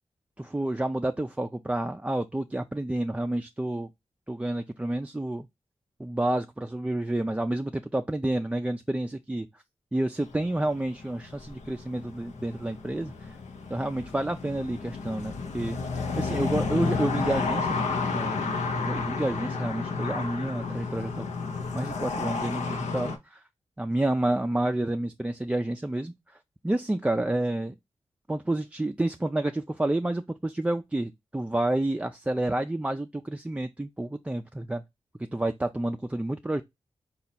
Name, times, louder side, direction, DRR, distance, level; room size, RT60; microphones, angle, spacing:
voice 1, 0.4-3.9 4.3-5.5 6.0-9.5 9.9-13.4 13.7-15.8 16.1-21.2 21.7-23.4 23.8-26.1 26.6-27.7 28.3-34.8 35.3-36.6, right 1 dB, 10° right, 0.3 m, -29 dB
sound 1, 10.2-23.2, left 4 dB, 90° left, 0.7 m, -32 dB
3.9 x 2.3 x 4.0 m
cardioid pair, 55°, 12 cm